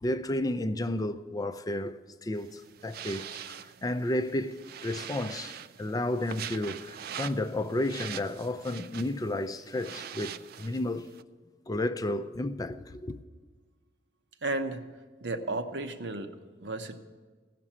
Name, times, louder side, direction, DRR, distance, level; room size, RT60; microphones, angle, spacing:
voice 1, 0.0-11.1 11.7-13.2, left 1 dB, 20° left, 0.4 m, -32 dB
sound 1, 2.4-11.2, right 9 dB, 55° right, 0.3 m, -43 dB
voice 2, 14.4-14.8 15.2-17.0, right 2 dB, 75° right, 0.9 m, -34 dB
16.0 x 6.0 x 8.6 m
head